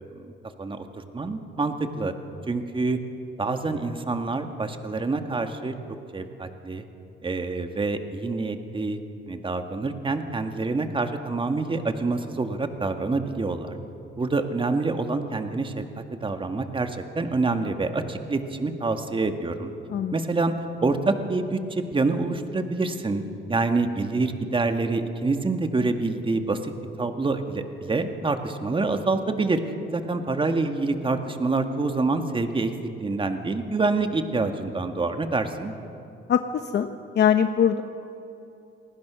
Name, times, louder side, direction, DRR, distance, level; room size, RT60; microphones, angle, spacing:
voice 1, 1.1-2.1 2.5-3.0 3.4-5.7 6.1-6.8 7.2-9.0 9.3-13.8 14.2-19.7 20.1-20.5 20.8-23.2 23.5-26.7 27.0-29.6 29.9-32.7 33.0-35.7, right 3 dB, 25° right, 6 dB, 2.0 m, -26 dB
voice 2, 37.2-37.8, left 9 dB, 60° left, 8 dB, 1.0 m, -20 dB
28.0 x 19.5 x 6.3 m, 2.9 s
cardioid pair, 90°, 20 cm